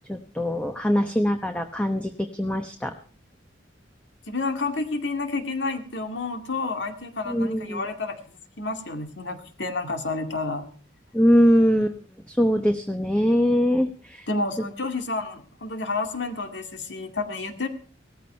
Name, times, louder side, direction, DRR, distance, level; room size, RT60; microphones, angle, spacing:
voice 1, 0.1-2.9 7.3-7.8 11.1-12.0 12.3-14.3, equal, 5° left, 6 dB, 0.9 m, -22 dB
voice 2, 4.3-10.6 14.3-17.7, left 3 dB, 65° left, 6 dB, 2.2 m, -30 dB
17.5 x 14.0 x 4.4 m, 0.40 s
head